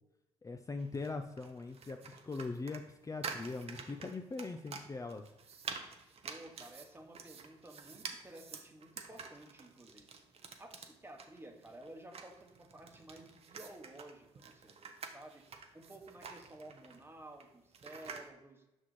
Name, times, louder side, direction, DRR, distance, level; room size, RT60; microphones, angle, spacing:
voice 1, 0.4-5.2, left 3 dB, 25° left, 6 dB, 0.5 m, -41 dB
sound 1, 0.8-18.3, right 5 dB, 50° right, 0.8 m, -49 dB
voice 2, 6.2-10.2 10.6-15.5 15.7-18.6, right 1 dB, 20° right, 3 dB, 1.1 m, -53 dB
6.3 x 5.7 x 3.2 m, 0.92 s
supercardioid pair, 55°, 13 cm